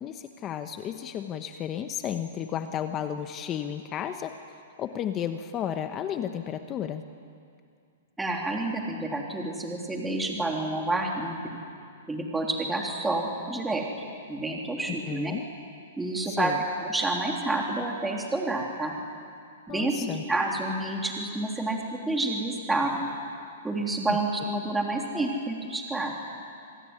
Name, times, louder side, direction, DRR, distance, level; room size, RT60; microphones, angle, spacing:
voice 1, 0.0-7.0 14.9-15.4 16.3-16.6 19.7-20.2, left 9 dB, 25° left, 8 dB, 1.1 m, -33 dB
voice 2, 8.2-11.4 12.1-13.9 14.3-15.3 16.0-16.5 16.8-18.9 19.7-23.1 23.6-26.1, right 2 dB, 5° right, 0 dB, 3.4 m, -29 dB
27.5 x 20.5 x 9.8 m, 2.4 s
hypercardioid pair, 150°, 0 cm